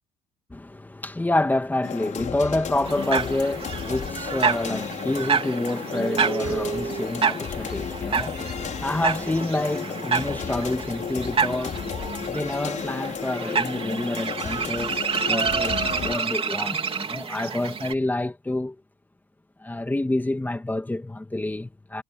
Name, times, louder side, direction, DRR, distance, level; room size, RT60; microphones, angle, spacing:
voice 1, 0.5-18.8 19.6-22.0, left 2 dB, 10° left, 2.4 m, -28 dB
sound 1, 1.8-16.2, left 8 dB, 45° left, 5.9 m, -33 dB
sound 2, 2.8-17.9, right 6 dB, 35° right, 3.4 m, -28 dB
cardioid pair, 110°, 17 cm